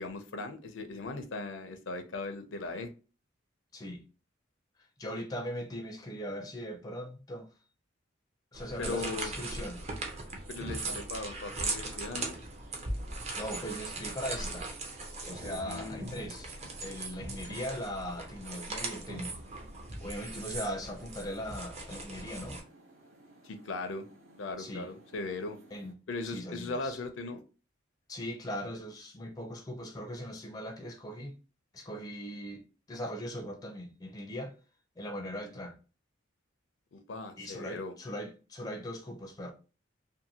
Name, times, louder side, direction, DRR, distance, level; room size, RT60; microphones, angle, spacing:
voice 1, 0.0-2.9 8.8-9.3 10.5-12.4 15.6-16.1 23.4-24.0 24.4-25.6 26.1-27.4 36.9-37.9, left 3 dB, 75° left, 0.5 m, -38 dB
voice 2, 5.0-7.5 8.5-9.8 13.3-14.7 15.3-16.5 16.8-19.4 20.0-22.6 24.6-24.9 25.7-26.0 26.2-27.0 28.1-31.3 31.7-32.6 32.9-34.5 35.0-35.8 37.4-39.5, equal, 20° left, 0.4 m, -39 dB
sound 1, 8.5-22.6, right 2 dB, 35° right, 0.5 m, -39 dB
sound 2, 9.1-25.9, right 2 dB, 85° right, 0.8 m, -58 dB
2.6 x 2.5 x 2.7 m
head